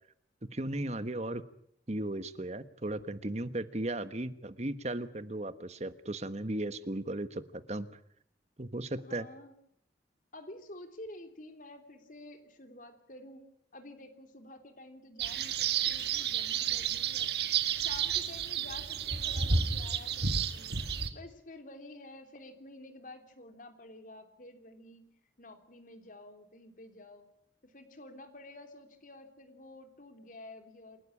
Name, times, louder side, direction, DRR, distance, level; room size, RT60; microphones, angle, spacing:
voice 1, 0.4-1.4 1.9-7.9 8.6-9.3, right 1 dB, 40° right, 12 dB, 1.3 m, -36 dB
voice 2, 9.0-9.5 10.3-13.4 13.7-17.3 17.8-20.8 21.1-25.1 25.4-27.3 27.6-31.0, left 1 dB, 50° left, 7 dB, 3.3 m, -50 dB
sound 1, 15.2-21.1, right 7 dB, 65° right, 1.8 m, -31 dB
28.5 x 12.5 x 10.0 m, 0.69 s
head